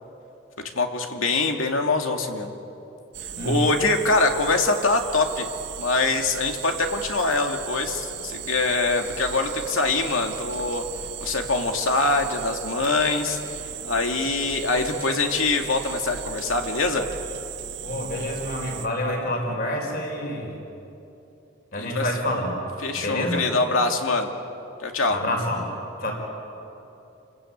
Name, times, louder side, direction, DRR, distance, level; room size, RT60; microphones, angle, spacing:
voice 1, 0.7-2.5 3.4-5.5 5.8-10.8 11.2-13.4 13.9-17.1 21.7-22.0 22.8-24.3 24.8-25.2, left 3 dB, 80° left, 3 dB, 2.3 m, -24 dB
sound 1, 3.1-18.9, right 8 dB, 55° right, 1.6 m, -36 dB
voice 2, 3.4-3.7 17.8-20.5 21.7-22.6 23.0-23.5 25.1-25.7 26.0-26.1, left 1 dB, 50° left, 2 dB, 4.9 m, -27 dB
29.0 x 21.0 x 8.7 m, 2.9 s
head